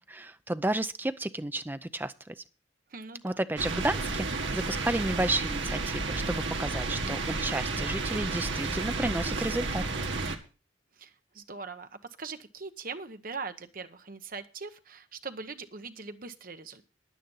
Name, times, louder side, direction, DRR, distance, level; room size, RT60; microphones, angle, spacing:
voice 1, 0.1-2.3 3.2-9.8, right 1 dB, 10° right, 12 dB, 0.5 m, -32 dB
voice 2, 2.9-3.4 11.0-11.9 12.2-16.8, right 4 dB, 50° right, 9 dB, 1.0 m, -41 dB
sound 1, 3.6-10.4, right 3 dB, 80° right, 1.6 m, -32 dB
10.5 x 9.3 x 5.5 m, 0.35 s
head